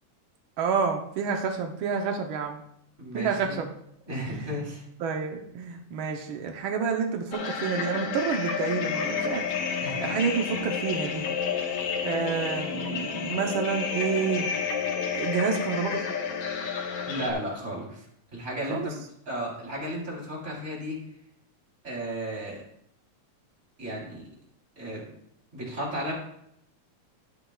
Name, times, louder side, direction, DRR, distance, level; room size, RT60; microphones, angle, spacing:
voice 1, 0.6-2.6 3.1-3.7 4.2-4.6 5.0-9.5 10.0-11.3 12.0-14.5 15.1-16.0 18.7-18.9, right 6 dB, 85° right, 3 dB, 1.1 m, -29 dB
voice 2, 3.0-3.6 4.1-4.8 9.8-10.1 17.1-18.0 18.3-19.0 19.3-21.0 21.8-22.6 23.8-24.3 24.8-25.0 25.5-26.1, equal, 20° right, -4 dB, 4.0 m, -34 dB
sound 1, 7.3-17.3, left 6 dB, 60° left, 1.9 m, -30 dB
12.0 x 10.0 x 2.4 m, 0.74 s
omnidirectional pair, 3.4 m